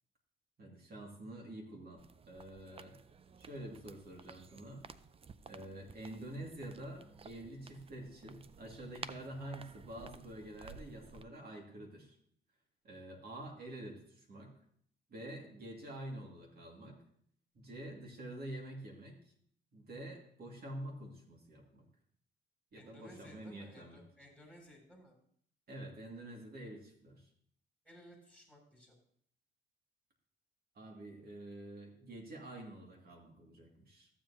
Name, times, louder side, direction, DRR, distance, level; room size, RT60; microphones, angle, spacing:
voice 1, 0.6-2.9 3.4-4.8 5.4-12.1 12.8-14.5 15.1-17.0 17.5-19.2 19.7-21.9 22.7-24.0 25.7-27.3 30.7-34.1, right 1 dB, 50° right, 1 dB, 2.4 m, -47 dB
sound 1, 2.0-11.2, right 5 dB, 30° right, 0.4 m, -54 dB
voice 2, 22.8-25.2 27.8-29.0, equal, 5° right, -2 dB, 2.8 m, -57 dB
14.0 x 7.5 x 2.9 m, 0.64 s
cardioid pair, 90°, 20 cm